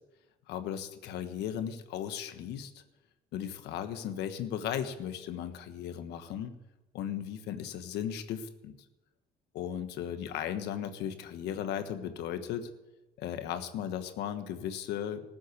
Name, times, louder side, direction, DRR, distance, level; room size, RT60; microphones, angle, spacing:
voice 1, 0.5-2.8 3.3-6.5 6.9-8.7 9.5-12.7 13.2-15.2, left 9 dB, 85° left, 9 dB, 1.3 m, -36 dB
14.0 x 7.7 x 8.2 m, 1.0 s
cardioid pair, 110°, 17 cm